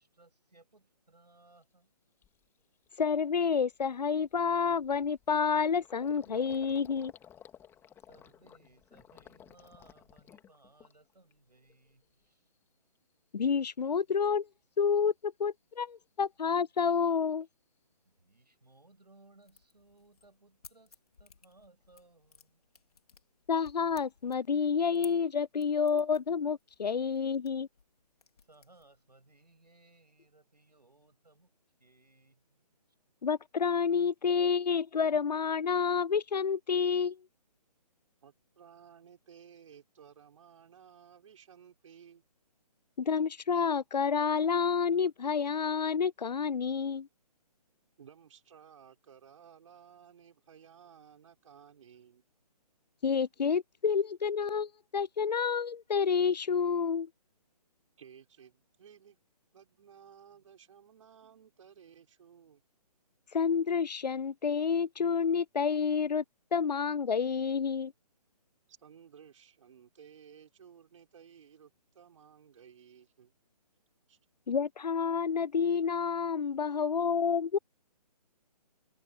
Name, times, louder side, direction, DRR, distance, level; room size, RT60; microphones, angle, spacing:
voice 1, 0.0-1.9 8.1-12.5 18.1-22.6 28.5-31.5 31.8-32.7, right 2 dB, 85° right, 6.9 m, -63 dB
Gurgling, 1.6-1.7 2.2-2.5 2.9-3.0 3.3-11.3 11.6-12.3, left 9 dB, 10° left, 2.4 m, -56 dB
voice 2, 3.0-7.1 13.3-14.5 14.8-17.5 23.5-27.7 33.2-37.2 43.0-47.1 53.0-57.1 63.3-66.2 66.5-67.9 74.5-77.6, left 6 dB, 85° left, 0.5 m, -29 dB
sound 1, 15.1-15.2 15.7-15.8 16.1-16.8 17.2-17.3 17.8-17.9 18.2-19.0 19.4-29.7, left 5 dB, 65° left, 4.2 m, -59 dB
voice 3, 38.2-42.2 48.0-52.3 58.0-59.2 59.5-62.6 68.7-73.3 74.1-74.2, right 8 dB, 50° right, 5.4 m, -56 dB
figure-of-eight pair, 140°, 21 cm